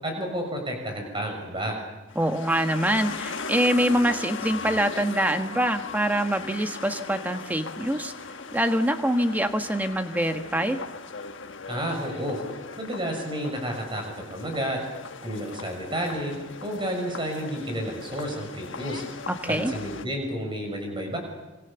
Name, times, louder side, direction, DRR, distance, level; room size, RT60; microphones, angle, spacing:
voice 1, 0.0-1.8 11.7-12.4 12.8-14.8 15.2-16.3 16.6-19.0 19.5-21.2, equal, 25° right, 3 dB, 6.4 m, -31 dB
sound 1, 2.1-20.1, left 4 dB, 60° left, 1.5 m, -38 dB
voice 2, 2.1-8.1 8.5-10.8 19.3-19.7, right 1 dB, 10° right, 6 dB, 1.4 m, -25 dB
28.0 x 25.5 x 7.1 m, 1.1 s
head